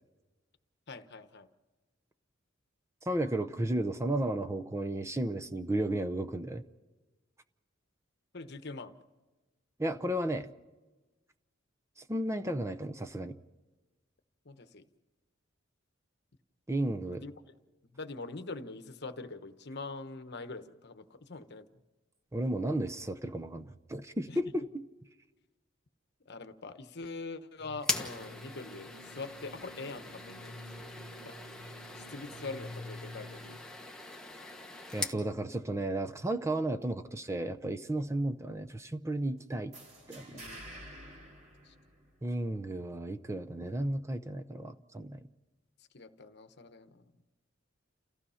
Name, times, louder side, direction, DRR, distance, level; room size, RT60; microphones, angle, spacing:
voice 1, 0.9-1.5 8.3-8.9 14.4-14.8 17.2-17.3 17.9-21.7 24.3-24.4 26.3-31.0 31.2-31.4 31.9-33.7 40.3-40.6 41.6-41.7 45.9-47.1, left 3 dB, 60° left, 9 dB, 1.1 m, -44 dB
voice 2, 3.0-6.6 9.8-10.5 12.0-13.4 16.7-17.2 22.3-24.8 34.9-39.7 40.1-40.4 42.2-45.3, right 1 dB, 15° right, 8 dB, 0.7 m, -33 dB
sound 1, 27.6-33.6, left 1 dB, 60° right, 7.1 m, -49 dB
sound 2, 27.8-35.2, left 2 dB, 5° left, 1.3 m, -41 dB
sound 3, 39.7-42.4, right 1 dB, 35° right, 2.7 m, -49 dB
29.5 x 15.5 x 5.7 m, 1.2 s
head